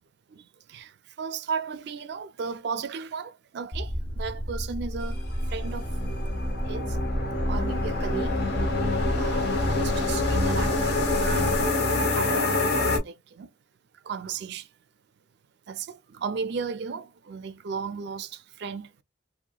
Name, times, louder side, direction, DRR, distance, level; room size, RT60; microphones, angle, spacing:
voice 1, 1.2-5.2 5.5-5.8 6.7-7.0 7.5-8.3 9.1-11.8 12.1-12.7 13.0-13.5 14.1-14.7 15.7-18.9, right 5 dB, 60° right, 0.4 m, -35 dB
sound 1, 3.7-11.7, equal, 30° left, 0.4 m, -32 dB
sound 2, 5.1-13.0, left 2 dB, 55° left, 0.8 m, -26 dB
2.8 x 2.1 x 2.3 m
head